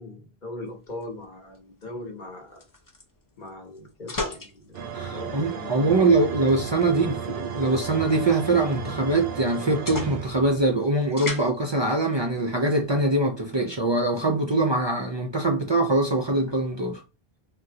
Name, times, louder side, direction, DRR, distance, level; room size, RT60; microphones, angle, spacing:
voice 1, 0.0-2.6 3.4-6.1 6.8-6.9, left 2 dB, 50° left, 1.1 m, -40 dB
sound 1, 0.7-13.2, left 2 dB, 30° left, 0.4 m, -41 dB
sound 2, 4.7-10.8, right 6 dB, 75° right, 0.8 m, -34 dB
voice 2, 4.9-17.0, right 2 dB, 45° right, 0.3 m, -23 dB
3.6 x 2.1 x 2.7 m
omnidirectional pair, 1.1 m